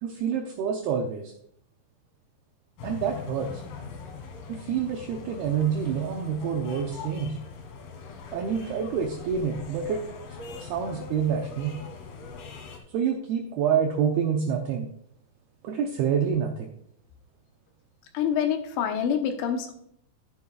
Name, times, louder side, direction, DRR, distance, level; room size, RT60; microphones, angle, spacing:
voice 1, 0.0-1.3 2.8-3.6 4.5-7.4 8.3-10.0 10.6-11.7 12.9-14.9 15.6-16.7, right 7 dB, 75° right, 2 dB, 2.4 m, -27 dB
sound 1, 2.8-12.8, left 5 dB, 65° left, 3.0 m, -41 dB
voice 2, 18.1-19.7, left 8 dB, 90° left, 4 dB, 3.5 m, -26 dB
11.0 x 10.0 x 2.3 m, 0.67 s
omnidirectional pair, 5.2 m